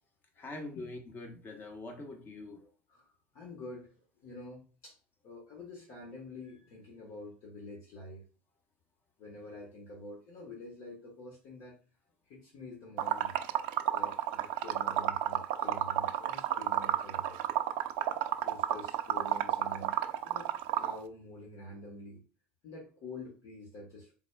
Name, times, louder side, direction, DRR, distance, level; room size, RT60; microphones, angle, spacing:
voice 1, 0.4-2.6, left 2 dB, 35° left, 1.2 m, -44 dB
voice 2, 2.9-3.9 4.2-4.9 5.2-8.2 9.2-11.8 12.3-13.4 13.9-17.4 18.4-19.9 20.2-22.2 22.6-24.1, left 2 dB, 60° left, 1.3 m, -47 dB
Liquid, 13.0-21.0, right 12 dB, 65° right, 0.4 m, -31 dB
4.0 x 3.6 x 2.3 m
hypercardioid pair, 75°, 6 cm